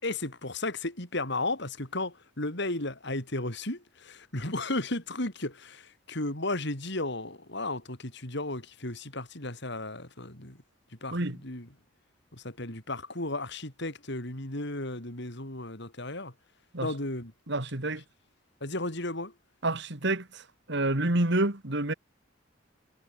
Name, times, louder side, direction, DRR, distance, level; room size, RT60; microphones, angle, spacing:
voice 1, 0.0-10.6 11.0-11.7 12.4-16.3 16.8-17.3 18.6-19.3, left 2 dB, 60° left, 5.4 m, -34 dB
voice 2, 17.5-18.0 19.6-20.4 20.7-21.9, right 2 dB, 65° right, 2.7 m, -28 dB
head